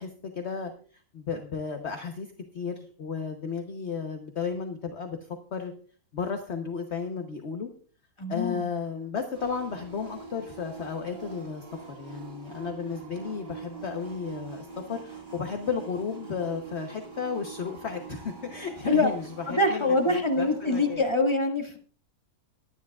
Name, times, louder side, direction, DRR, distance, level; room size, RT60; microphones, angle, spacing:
voice 1, 0.0-5.8 6.1-7.7 8.3-21.0, left 5 dB, 50° left, 5 dB, 1.2 m, -34 dB
voice 2, 8.2-8.6 18.9-19.1 19.5-21.8, left 2 dB, 20° left, 2 dB, 1.9 m, -24 dB
sound 1, 9.3-21.0, right 6 dB, 40° right, 3.4 m, -44 dB
22.5 x 10.0 x 2.4 m, 0.42 s
omnidirectional pair, 1.5 m